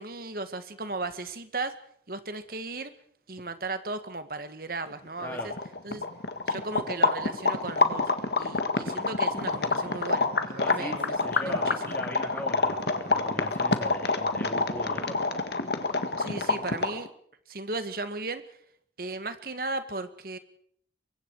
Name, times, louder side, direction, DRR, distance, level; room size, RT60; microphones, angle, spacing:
voice 1, 0.0-1.8 2.1-2.9 3.3-5.5 5.8-6.0 6.5-8.1 8.4-12.0 16.2-17.1 17.5-18.6 19.0-20.4, right 3 dB, 55° right, 10 dB, 1.8 m, -36 dB
sound 1, 5.1-5.2 5.3-17.1, left 3 dB, 65° left, 1.8 m, -27 dB
voice 2, 5.2-5.5 10.6-15.2, equal, 10° left, 1 dB, 3.7 m, -39 dB
25.0 x 23.0 x 4.8 m, 0.64 s
head